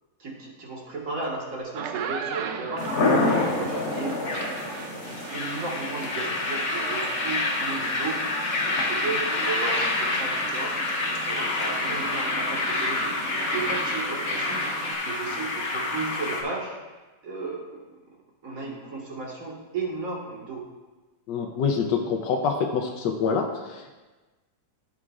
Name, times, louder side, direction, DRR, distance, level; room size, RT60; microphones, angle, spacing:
voice 1, 0.2-2.9 3.3-4.2 4.9-8.2 8.6-10.8 11.0-14.6 15.0-16.8 17.2-17.8 18.4-20.6, right 3 dB, 50° right, -3 dB, 2.1 m, -34 dB
sound 1, 1.6-14.9, right 6 dB, 90° right, 0.6 m, -38 dB
sound 2, 2.8-16.4, left 2 dB, 55° left, 1.5 m, -27 dB
voice 2, 21.3-23.9, left 5 dB, 90° left, 2 dB, 1.3 m, -26 dB
14.5 x 6.0 x 2.5 m, 1.2 s
omnidirectional pair, 1.9 m